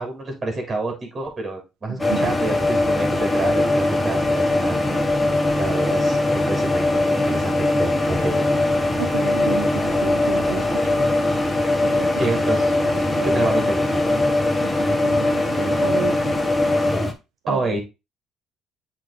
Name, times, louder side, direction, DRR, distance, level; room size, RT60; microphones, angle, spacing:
voice 1, 0.0-5.1 5.6-8.4 12.2-12.7 13.2-14.3 17.5-17.8, right 2 dB, 35° right, 3 dB, 3.5 m, -28 dB
sound 1, 2.0-17.1, left 2 dB, 10° left, 1.6 m, -21 dB
voice 2, 2.0-2.3 9.0-11.1 11.8-12.1 12.8-13.6 14.6-16.4 17.5-17.8, right 11 dB, 90° right, 8 dB, 0.7 m, -32 dB
7.5 x 4.0 x 3.8 m, 0.25 s
supercardioid pair, 80°, 0 cm